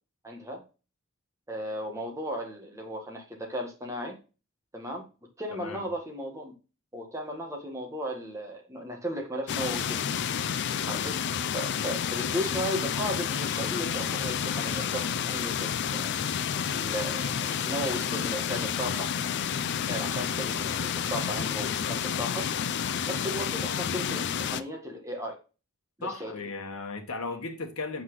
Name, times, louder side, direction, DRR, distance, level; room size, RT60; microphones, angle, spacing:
voice 1, 0.2-0.6 1.5-4.2 4.7-5.1 5.4-6.5 6.9-10.1 10.9-11.2 11.5-16.2 16.7-19.1 19.9-22.5 23.0-25.3 26.0-26.3, equal, 15° right, 1.6 m, -35 dB
voice 2, 5.5-5.8 26.0-28.0, left 3 dB, 80° left, 1.3 m, -36 dB
sound 1, 9.5-24.6, left 8 dB, 55° left, 0.4 m, -30 dB
5.7 x 5.7 x 3.1 m
head